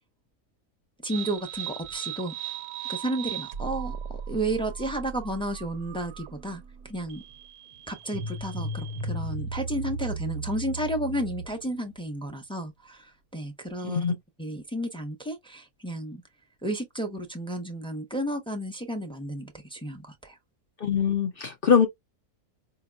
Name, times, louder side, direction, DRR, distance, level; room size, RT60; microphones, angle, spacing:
voice 1, 1.0-2.3 2.9-4.0 4.3-7.2 7.9-16.2 16.6-20.4, right 1 dB, 5° left, 0.4 m, -32 dB
sound 1, 1.1-11.7, right 4 dB, 90° right, 1.2 m, -36 dB
voice 2, 13.8-14.1 20.8-21.9, left 7 dB, 65° left, 0.5 m, -22 dB
5.1 x 2.8 x 2.2 m
omnidirectional pair, 1.6 m